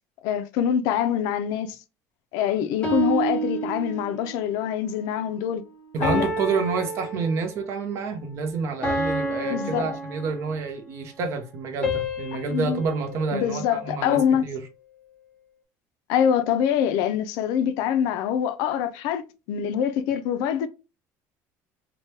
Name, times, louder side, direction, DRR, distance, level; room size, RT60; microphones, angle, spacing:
voice 1, 0.2-1.8 2.3-5.6 6.0-6.3 9.4-10.0 12.5-12.8 13.3-14.4 16.1-20.7, left 9 dB, 75° left, 0.4 m, -24 dB
sound 1, 2.8-4.4 6.0-7.7 8.8-10.7 11.8-14.2, right 1 dB, 15° left, 1.2 m, -30 dB
voice 2, 5.9-14.6, right 5 dB, 45° right, 0.6 m, -28 dB
2.9 x 2.2 x 3.1 m
cardioid pair, 165°, 7 cm